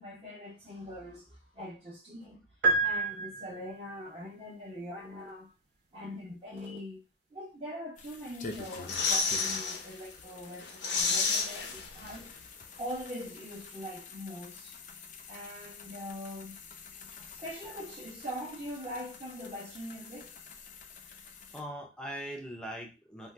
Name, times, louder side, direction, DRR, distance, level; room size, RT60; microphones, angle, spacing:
voice 1, 0.0-2.4 2.8-5.5 5.9-7.0 7.3-12.3 12.8-14.8 15.3-16.6 17.1-20.3, equal, 30° right, 0.9 m, -42 dB
sound 1, 2.6-3.9, right 3 dB, 75° right, 0.6 m, -28 dB
sound 2, 8.0-21.6, left 5 dB, 45° left, 0.4 m, -48 dB
sound 3, 8.5-9.8 10.2-10.3 10.6-12.4 12.6-12.7, left 4 dB, 85° left, 0.7 m, -30 dB
voice 2, 21.5-23.3, equal, 5° left, 0.6 m, -41 dB
2.6 x 2.3 x 3.2 m
head